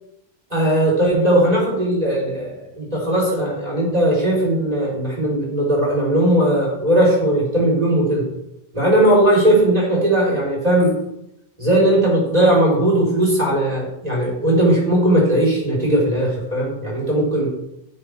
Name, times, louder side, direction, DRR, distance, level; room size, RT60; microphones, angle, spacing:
voice 1, 0.5-8.2 8.7-11.0 11.6-17.5, right 1 dB, 35° right, -4 dB, 4.2 m, -18 dB
11.5 x 7.2 x 3.5 m, 0.84 s
omnidirectional pair, 1.1 m